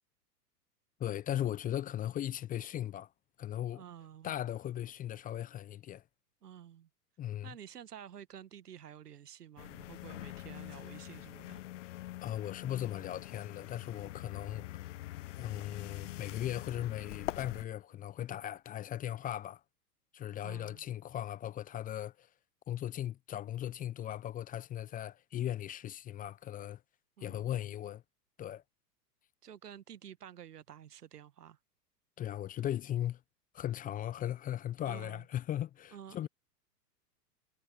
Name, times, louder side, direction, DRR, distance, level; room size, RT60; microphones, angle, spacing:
voice 1, 1.0-3.1 3.4-3.8 4.2-6.0 7.2-7.5 12.2-14.7 15.4-19.6 20.1-22.3 22.7-26.8 27.2-28.0 28.4-28.6 32.2-33.2 33.5-36.3, left 11 dB, 15° left, 0.8 m, -38 dB
voice 2, 3.7-4.3 6.4-6.9 7.4-11.6 20.4-20.9 27.2-27.5 29.4-31.6 34.9-35.2 35.9-36.3, right 9 dB, 70° right, 1.5 m, -51 dB
sound 1, 9.6-17.7, left 16 dB, 50° left, 0.5 m, -44 dB
figure-of-eight pair, 105°, 48 cm